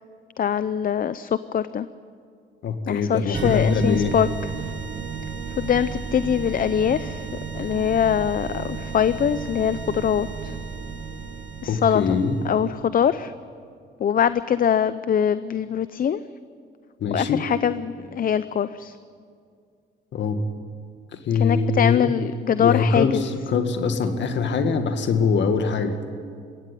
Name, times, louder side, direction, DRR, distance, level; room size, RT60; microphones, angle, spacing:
voice 1, 0.4-1.9 2.9-4.3 5.6-7.3 7.5-10.5 11.6-12.2 12.4-13.3 14.0-16.2 17.1-18.9 21.3-23.3, left 8 dB, 45° left, 14 dB, 0.6 m, -23 dB
voice 2, 2.6-4.2 11.7-12.4 17.0-17.4 20.1-20.4 21.1-22.1 22.6-26.0, left 5 dB, 65° left, 7 dB, 2.1 m, -23 dB
sound 1, 3.3-12.8, right 5 dB, 70° right, 1.9 m, -33 dB
22.0 x 16.5 x 9.3 m, 2.2 s
cardioid pair, 90°, 20 cm